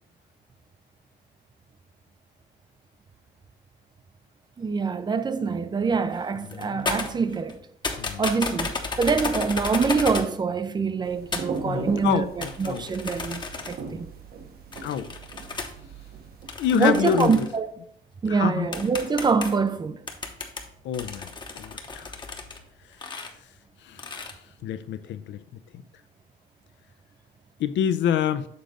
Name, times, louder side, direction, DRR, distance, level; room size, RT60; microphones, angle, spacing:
voice 1, 4.6-7.6 8.2-14.1 16.7-17.7 18.2-20.1, right 5 dB, 20° right, 0.4 m, -25 dB
sound 1, 6.1-6.2 6.5-7.6 7.8-10.3 11.3-11.6 12.4-13.9 14.7-15.7 16.5-17.6 18.3-18.4 18.7-19.7 20.1-22.6 22.9-23.3 24.0-24.3, left 4 dB, 25° left, 0.8 m, -33 dB
voice 2, 6.5-6.9 8.0-8.2 11.6-12.8 14.8-15.1 16.6-17.5 18.3-18.7 20.8-21.3 21.5-22.2 23.9-24.2 24.6-25.4 27.6-28.5, left 9 dB, 65° left, 0.5 m, -27 dB
sound 2, 11.0-16.5, right 5 dB, 50° right, 0.9 m, -39 dB
6.9 x 3.8 x 4.9 m
cardioid pair, 120°, 20 cm